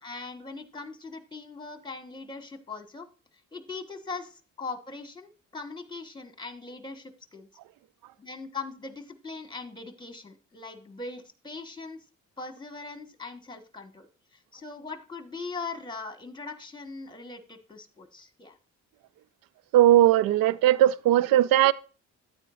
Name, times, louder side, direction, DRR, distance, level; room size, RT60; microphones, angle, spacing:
voice 1, 0.0-3.1 3.5-7.5 8.2-12.0 12.4-18.6, left 4 dB, 15° left, 1.4 m, -40 dB
voice 2, 19.7-21.7, right 13 dB, 70° right, 0.5 m, -19 dB
9.5 x 9.0 x 2.5 m
supercardioid pair, 50°, 36 cm